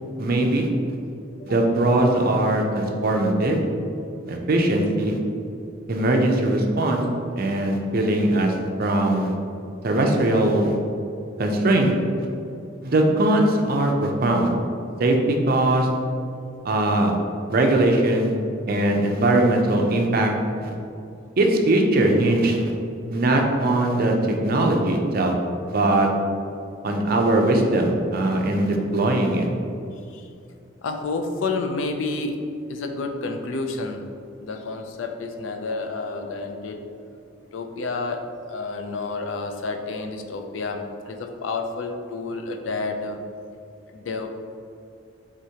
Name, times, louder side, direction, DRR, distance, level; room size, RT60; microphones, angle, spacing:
voice 1, 0.2-0.7 1.4-3.6 4.3-5.2 5.9-7.1 7.4-8.5 8.8-9.3 9.8-10.8 11.4-11.9 12.2-12.3 12.8-14.5 15.0-15.9 16.6-17.2 17.5-18.3 18.7-20.3 20.6-20.7 21.4-22.7 23.1-25.3 25.7-26.1 26.8-29.5, right 1 dB, 50° right, 2 dB, 0.5 m, -20 dB
voice 2, 29.9-30.3 30.8-34.1 34.4-36.8 37.5-43.2 43.9-44.3, left 3 dB, 80° left, 5 dB, 0.4 m, -30 dB
4.8 x 3.5 x 2.8 m, 2.5 s
head